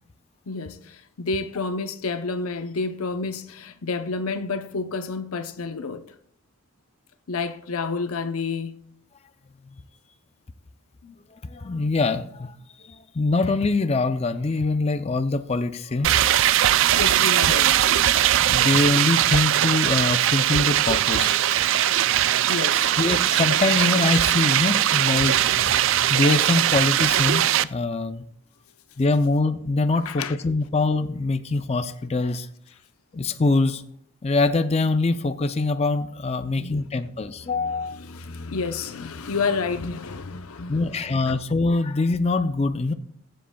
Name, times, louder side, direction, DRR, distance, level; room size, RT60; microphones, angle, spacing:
voice 1, 0.5-6.1 7.3-8.8 11.0-11.1 16.9-17.8 22.4-22.9 30.1-30.4 36.5-37.1 37.4-41.4, left 4 dB, 90° left, 0.7 m, -30 dB
voice 2, 11.4-16.1 16.9-17.0 18.4-21.4 23.0-28.3 29.0-32.5 33.1-33.8 34.2-37.9 40.7-42.9, left 3 dB, 30° left, 0.4 m, -24 dB
sound 1, 16.0-27.6, right 12 dB, 60° right, 0.3 m, -20 dB
22.0 x 7.6 x 2.3 m
head